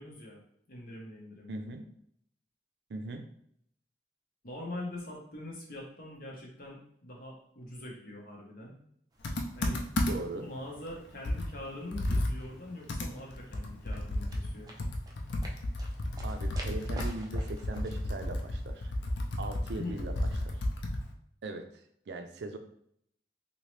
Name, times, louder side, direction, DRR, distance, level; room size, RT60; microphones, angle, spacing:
voice 1, 0.0-1.6 4.4-8.8 9.6-9.9 10.3-14.8 19.7-19.9, left 1 dB, 55° left, -2 dB, 1.0 m, -43 dB
voice 2, 1.5-1.9 2.9-3.3 10.1-10.5 16.2-18.9 19.4-20.1 20.4-20.6 21.4-21.7 22.1-22.6, right 2 dB, 75° right, 7 dB, 0.4 m, -39 dB
sound 1, 9.1-18.1, right 1 dB, 20° right, 0.5 m, -50 dB
Computer keyboard, 9.2-10.4 10.8-10.9 11.2-21.1, left 1 dB, 85° left, 0.5 m, -33 dB
3.0 x 2.7 x 3.2 m, 0.69 s
head